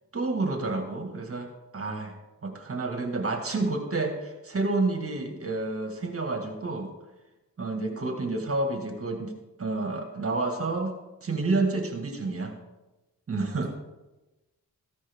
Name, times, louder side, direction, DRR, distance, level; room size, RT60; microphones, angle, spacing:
voice 1, 0.1-1.5 1.7-2.2 2.4-6.9 7.6-9.3 9.6-10.9 11.2-12.5 13.3-13.7, right 3 dB, 40° right, 4 dB, 1.9 m, -29 dB
voice 2, 7.8-8.3 13.3-13.7, left 5 dB, 55° left, -2 dB, 4.1 m, -50 dB
14.5 x 10.5 x 3.6 m, 1.0 s
cardioid pair, 75°, 35 cm